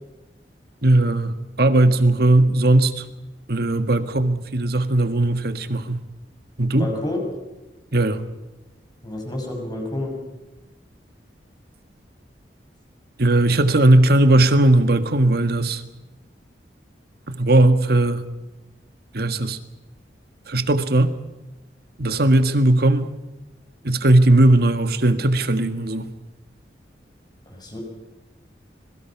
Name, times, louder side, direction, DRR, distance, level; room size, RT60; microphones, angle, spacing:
voice 1, 0.8-3.0 3.5-6.0 6.6-6.9 7.9-8.2 13.2-15.8 17.3-18.3 19.1-19.6 20.5-21.2 22.0-23.1 23.8-26.1, right 1 dB, 60° right, 10 dB, 1.6 m, -18 dB
voice 2, 6.7-7.2 9.0-10.2 27.5-27.8, left 1 dB, 25° left, 2 dB, 6.3 m, -29 dB
26.5 x 22.0 x 5.9 m, 1.1 s
head